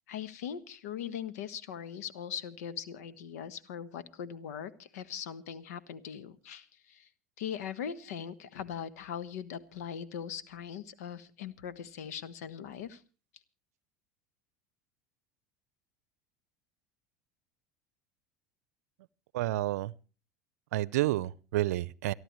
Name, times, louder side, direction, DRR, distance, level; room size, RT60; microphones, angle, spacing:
voice 1, 0.1-7.1 7.4-13.0, left 8 dB, 75° left, 1.4 m, -40 dB
voice 2, 19.3-19.9 20.7-22.1, right 16 dB, 75° right, 0.6 m, -30 dB
29.0 x 11.0 x 3.1 m
hypercardioid pair, 80°, 9 cm